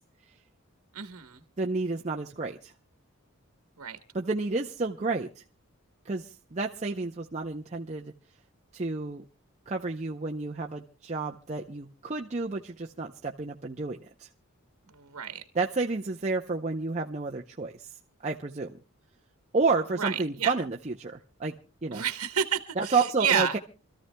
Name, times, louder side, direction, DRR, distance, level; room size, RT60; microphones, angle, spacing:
voice 1, 0.9-1.4 3.8-4.0 14.9-15.4 20.0-20.5 21.9-23.6, right 7 dB, 85° right, 1.1 m, -30 dB
voice 2, 1.6-2.7 4.1-5.4 6.1-8.1 8.7-9.2 9.7-14.0 15.6-17.7 18.2-18.8 19.5-21.5 21.8-22.0 22.8-23.6, right 3 dB, 30° right, 0.6 m, -30 dB
28.0 x 14.0 x 2.2 m
head